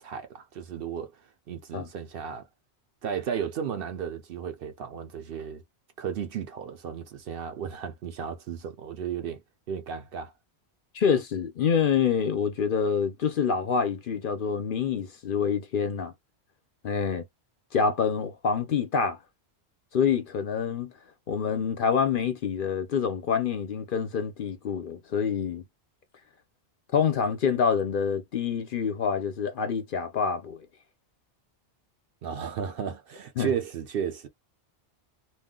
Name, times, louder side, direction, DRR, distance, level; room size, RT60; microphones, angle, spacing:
voice 1, 0.0-2.5 3.0-5.6 6.0-9.4 9.7-10.3 32.2-34.3, right 7 dB, 65° right, 0.7 m, -34 dB
voice 2, 10.9-16.1 16.8-17.2 17.7-19.2 19.9-20.9 21.3-25.6 26.9-30.7 33.4-33.5, left 6 dB, 55° left, 0.7 m, -26 dB
2.4 x 2.1 x 3.6 m
omnidirectional pair, 1.2 m